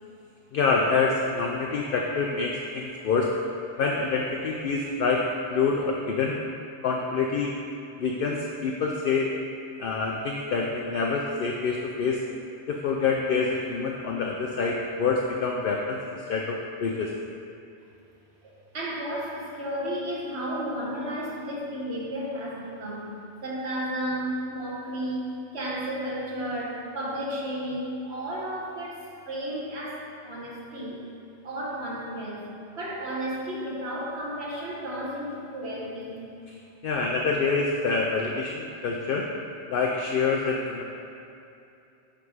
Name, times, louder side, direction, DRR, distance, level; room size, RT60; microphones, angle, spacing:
voice 1, 0.5-3.3 3.8-6.4 6.8-7.5 8.0-9.3 9.8-12.2 12.7-17.1 36.8-39.3 39.7-40.8, left 4 dB, 60° left, 0 dB, 0.7 m, -26 dB
voice 2, 18.4-23.1 23.4-31.0 31.4-32.5 32.7-36.2, right 1 dB, 70° right, -5 dB, 1.6 m, -33 dB
9.0 x 3.5 x 4.9 m, 2.7 s
omnidirectional pair, 1.1 m